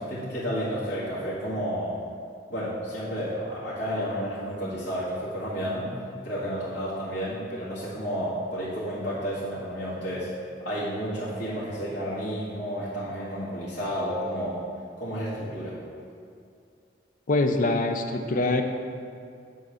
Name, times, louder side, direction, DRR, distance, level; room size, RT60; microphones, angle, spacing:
voice 1, 0.0-2.0 2.5-5.9 6.2-10.3 10.6-14.6 15.0-15.8, equal, 75° left, -12 dB, 2.1 m, -31 dB
voice 2, 17.3-18.6, left 2 dB, 50° left, 5 dB, 0.6 m, -24 dB
8.3 x 4.0 x 6.4 m, 2.4 s
head